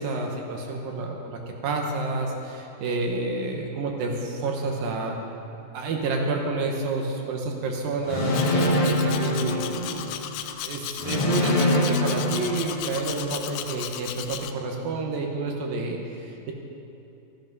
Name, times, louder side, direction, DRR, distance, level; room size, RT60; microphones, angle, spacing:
voice 1, 0.0-5.2 5.7-10.1 10.6-16.5, right 3 dB, 70° right, 1 dB, 2.7 m, -29 dB
sound 1, 8.1-10.2 11.0-13.2, left 1 dB, 45° left, 2.0 m, -25 dB
Domestic sounds home sounds, 8.3-14.5, left 11 dB, 90° left, 1.9 m, -35 dB
13.5 x 13.0 x 5.4 m, 2.8 s
omnidirectional pair, 4.7 m